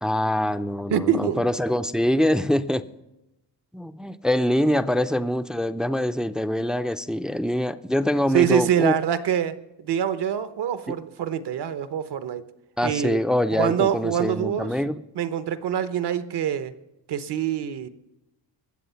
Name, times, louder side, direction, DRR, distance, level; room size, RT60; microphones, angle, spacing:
voice 1, 0.0-2.8 3.7-8.9 12.8-15.0, left 1 dB, ahead, 11 dB, 0.4 m, -24 dB
voice 2, 0.9-1.4 8.3-12.4 12.8-13.2 13.5-14.8 15.1-16.7 17.1-17.9, right 9 dB, 65° right, 12 dB, 1.0 m, -25 dB
21.5 x 8.0 x 5.7 m, 0.94 s
cardioid pair, 120°, 44 cm